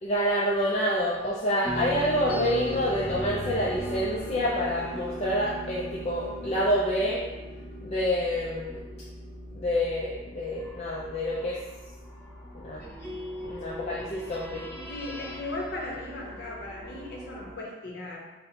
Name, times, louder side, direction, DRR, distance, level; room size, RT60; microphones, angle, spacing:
voice 1, 0.0-7.2 7.8-8.8 9.5-11.6 12.5-12.8 13.4-14.7, equal, 35° left, -5 dB, 0.3 m, -27 dB
sound 1, 1.6-17.6, equal, 10° left, 1.3 m, -38 dB
voice 2, 14.7-18.2, left 2 dB, 55° left, -3 dB, 0.8 m, -37 dB
5.4 x 2.0 x 2.7 m, 1.2 s
head